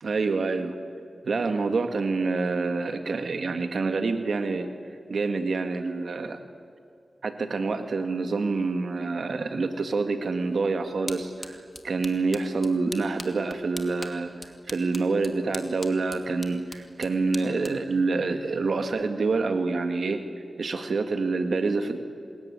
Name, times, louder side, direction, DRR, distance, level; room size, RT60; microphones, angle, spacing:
voice 1, 0.0-0.8 1.2-4.7 5.1-6.4 7.2-14.3 14.7-20.2 20.6-22.0, right 3 dB, 80° right, 7 dB, 1.8 m, -27 dB
sound 1, 10.4-19.1, left 2 dB, 25° left, 2.4 m, -44 dB
27.5 x 21.0 x 9.9 m, 2.3 s
wide cardioid pair, 75°, 0 cm